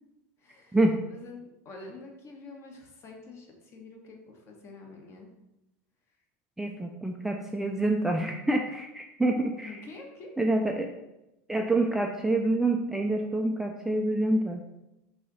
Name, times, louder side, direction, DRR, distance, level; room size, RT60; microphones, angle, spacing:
voice 1, 0.4-0.8 1.1-5.3 9.6-10.3, left 3 dB, 40° left, 1 dB, 1.1 m, -47 dB
voice 2, 6.6-9.8 10.4-10.9 11.5-14.6, right 2 dB, 5° right, 2 dB, 0.3 m, -27 dB
4.6 x 2.8 x 4.1 m, 0.94 s
supercardioid pair, 125°, 7 cm